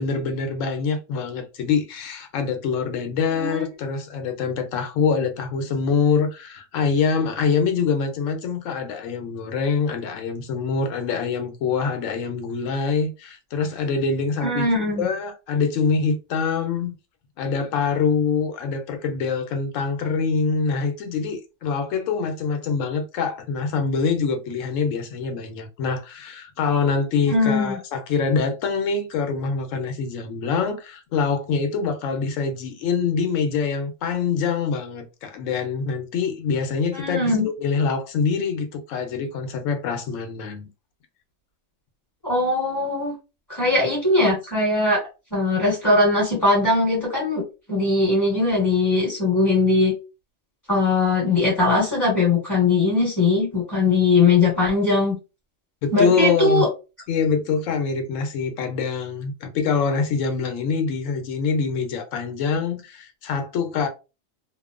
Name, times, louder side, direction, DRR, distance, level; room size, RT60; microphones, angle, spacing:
voice 1, 0.0-14.7 15.0-16.9 17.4-40.7 55.8-56.7 57.1-63.9, left 5 dB, 80° left, 1.0 m, -25 dB
voice 2, 3.3-3.7 14.4-15.1 27.2-27.8 36.9-37.5 42.2-43.1 43.5-45.0 45.3-47.4 47.7-49.9 50.7-55.2 55.9-56.7, left 3 dB, 20° left, 1.2 m, -20 dB
2.8 x 2.0 x 2.4 m
omnidirectional pair, 1.3 m